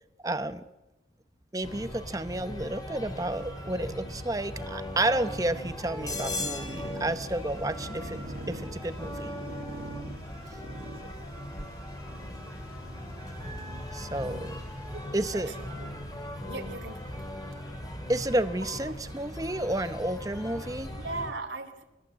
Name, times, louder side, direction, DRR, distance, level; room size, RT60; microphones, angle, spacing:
voice 1, 0.2-0.7 1.5-9.3 13.9-14.6 15.1-15.5 18.1-20.9, right 1 dB, 20° right, 11 dB, 0.9 m, -31 dB
sound 1, 1.6-21.3, left 1 dB, 20° left, 3.4 m, -39 dB
sound 2, 6.0-15.5 16.2-16.8 17.1-17.2 17.5-17.6 18.5-19.6, right 2 dB, 60° right, 2.1 m, -47 dB
voice 2, 15.3-16.0 16.5-17.1 20.8-21.8, right 3 dB, 85° right, 6 dB, 2.8 m, -39 dB
30.0 x 14.5 x 7.5 m, 0.98 s
head